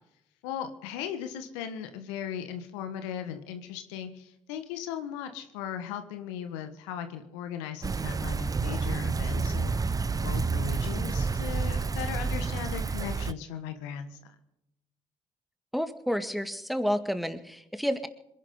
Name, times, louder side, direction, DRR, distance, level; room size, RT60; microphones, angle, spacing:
voice 1, 0.4-9.8 10.2-14.3, left 9 dB, 75° left, 8 dB, 1.4 m, -37 dB
sound 1, 7.8-13.3, right 4 dB, 25° right, 0.6 m, -29 dB
voice 2, 15.7-18.1, equal, ahead, 9 dB, 2.1 m, -30 dB
26.5 x 11.0 x 3.9 m, 0.87 s
hypercardioid pair, 45°, 15 cm